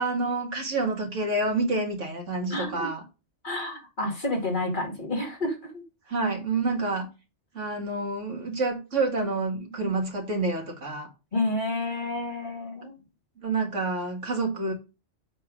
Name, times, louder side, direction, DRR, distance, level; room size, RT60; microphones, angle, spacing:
voice 1, 0.0-3.0 6.1-7.1 7.5-11.1 13.4-14.7, right 3 dB, 85° right, 2.3 m, -28 dB
voice 2, 2.5-2.9 3.4-5.8 11.3-13.0, left 2 dB, 40° left, 2.2 m, -30 dB
7.8 x 3.5 x 6.1 m
omnidirectional pair, 1.2 m